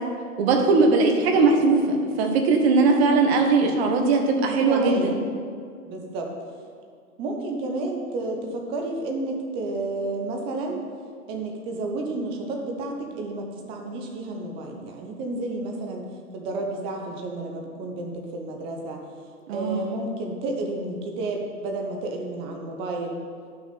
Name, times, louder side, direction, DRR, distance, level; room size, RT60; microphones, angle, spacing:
voice 1, 0.4-5.1 19.5-20.0, right 3 dB, 45° right, 3 dB, 1.3 m, -20 dB
voice 2, 1.3-1.7 4.4-5.2 5.9-6.3 7.2-10.8 11.3-16.1 16.3-19.0 19.5-23.2, right 2 dB, 15° right, 1 dB, 0.5 m, -31 dB
10.5 x 6.1 x 4.2 m, 2.2 s
hypercardioid pair, 135°, 44 cm